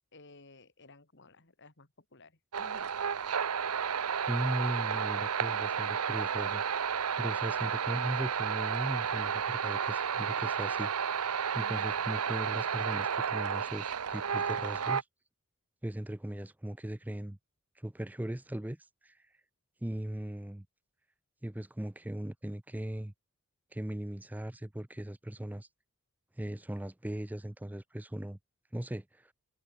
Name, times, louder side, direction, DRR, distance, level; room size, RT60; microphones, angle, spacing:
voice 1, 0.1-2.3 2.6-2.9 3.4-3.5 11.6-11.9, left 2 dB, 55° left, 3.6 m, -56 dB
sound 1, 2.5-15.0, right 7 dB, 85° right, 0.8 m, -32 dB
voice 2, 4.2-10.9 11.5-15.1 15.8-17.4 17.8-19.4 19.8-20.7 21.4-23.1 23.7-25.7 26.4-28.4 28.7-29.3, right 1 dB, 5° right, 0.5 m, -38 dB
head